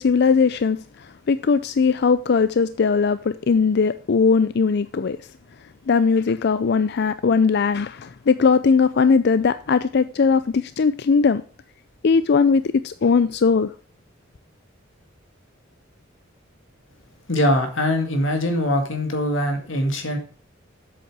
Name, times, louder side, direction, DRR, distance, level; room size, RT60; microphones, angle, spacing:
voice 1, 0.0-5.2 5.9-11.4 12.0-13.7, left 5 dB, 55° left, 0.4 m, -19 dB
voice 2, 17.3-20.2, left 1 dB, 75° left, 2.0 m, -22 dB
8.0 x 7.7 x 4.8 m
head